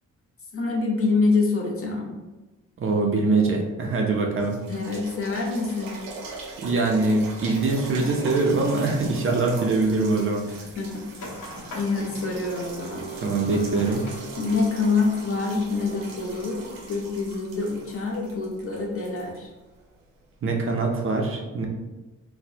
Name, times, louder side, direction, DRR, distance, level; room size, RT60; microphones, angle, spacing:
voice 1, 0.5-2.1 4.7-6.0 10.8-11.1 11.7-13.0 14.4-16.6 16.9-19.5, left 3 dB, 45° left, -1 dB, 0.7 m, -26 dB
voice 2, 2.8-4.6 6.6-10.5 13.2-14.1 20.4-21.7, right 3 dB, 40° right, 1 dB, 0.4 m, -23 dB
sound 1, 4.3-20.1 20.7-20.8, right 3 dB, 85° right, 0.7 m, -42 dB
sound 2, 11.2-16.9, right 1 dB, 65° left, 1.0 m, -40 dB
4.1 x 2.0 x 2.7 m, 1.1 s
wide cardioid pair, 145°, 33 cm